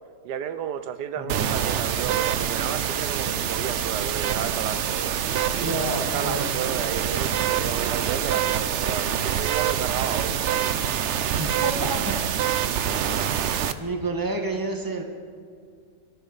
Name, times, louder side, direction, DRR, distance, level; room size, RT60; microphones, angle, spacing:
voice 1, 0.2-5.2 5.5-10.8, right 8 dB, 80° right, 12 dB, 1.2 m, -32 dB
voice 2, 1.2-1.6 5.5-6.5 11.4-12.1 13.8-15.0, right 2 dB, 15° right, 3 dB, 1.5 m, -29 dB
sound 1, 1.3-13.7, right 9 dB, 60° right, 0.8 m, -26 dB
22.5 x 13.5 x 4.0 m, 2.3 s
omnidirectional pair, 1.8 m